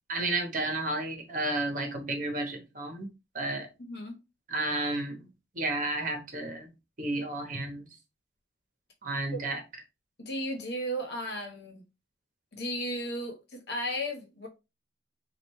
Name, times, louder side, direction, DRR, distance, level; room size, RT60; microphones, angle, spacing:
voice 1, 0.1-3.1 3.3-3.7 4.5-5.3 5.5-6.7 7.0-7.9 9.0-9.6, right 2 dB, 45° right, 1.1 m, -32 dB
voice 2, 3.8-4.2 10.2-11.8 12.5-14.5, equal, 60° left, 1.2 m, -35 dB
5.2 x 2.5 x 3.1 m
head